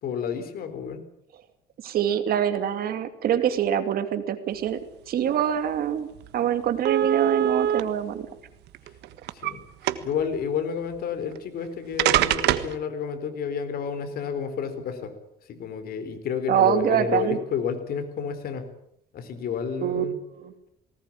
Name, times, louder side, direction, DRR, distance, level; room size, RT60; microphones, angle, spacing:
voice 1, 0.0-1.0 9.3-9.6 10.0-15.1 15.5-18.7 19.1-20.2, left 7 dB, 65° left, 9 dB, 4.1 m, -30 dB
voice 2, 1.8-4.8 5.1-6.1 6.3-8.3 16.5-17.4 19.8-20.0 20.4-20.5, right 9 dB, 60° right, 9 dB, 2.6 m, -24 dB
sound 1, 5.8-5.9 6.2-6.3 6.9-7.8 8.7-9.5 9.8-10.2 11.4-11.5 12.0-12.8, right 12 dB, 80° right, 1.6 m, -23 dB
19.5 x 19.0 x 8.8 m, 0.77 s
cardioid pair, 110°, 17 cm